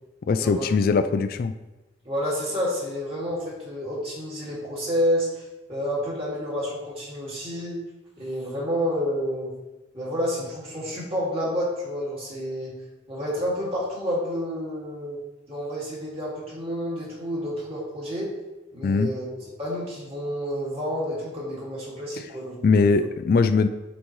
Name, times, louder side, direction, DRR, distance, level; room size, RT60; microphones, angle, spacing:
voice 1, 0.3-1.5 18.8-19.1 22.6-23.7, left 4 dB, 50° left, 9 dB, 0.3 m, -21 dB
voice 2, 2.0-5.4 5.7-7.8 8.2-9.5 9.9-12.7 13.1-15.2 15.5-18.3 18.7-19.3 19.6-22.9, equal, 30° right, -6 dB, 2.2 m, -29 dB
9.6 x 4.0 x 3.2 m, 1.1 s
head